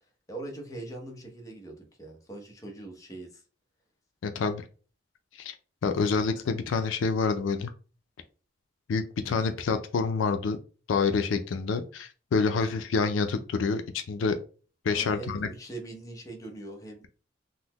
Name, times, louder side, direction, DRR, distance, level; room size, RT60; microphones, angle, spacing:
voice 1, 0.3-3.4 14.9-17.0, right 2 dB, 20° left, 0.7 m, -41 dB
voice 2, 4.2-4.6 5.4-5.5 5.8-7.7 8.9-10.6 10.9-14.4 14.8-15.5, left 4 dB, 85° left, 0.4 m, -27 dB
3.8 x 2.0 x 2.9 m
head